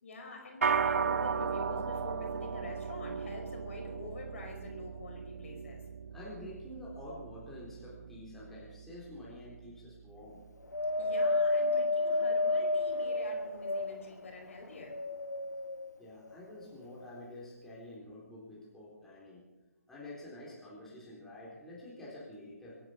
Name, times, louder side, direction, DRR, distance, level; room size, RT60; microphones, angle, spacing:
voice 1, 0.0-5.8 11.0-14.9, left 3 dB, 50° left, 2 dB, 5.1 m, -46 dB
sound 1, 0.6-10.1, right 6 dB, 60° right, 1.3 m, -36 dB
voice 2, 6.1-10.4 16.0-19.5 19.9-22.8, left 1 dB, 5° left, -7 dB, 4.1 m, -48 dB
Wind, 10.7-14.2 14.8-15.8 16.6-16.7, left 2 dB, 80° left, 1.1 m, -30 dB
24.5 x 11.0 x 5.3 m, 1.1 s
figure-of-eight pair, 145°, 9 cm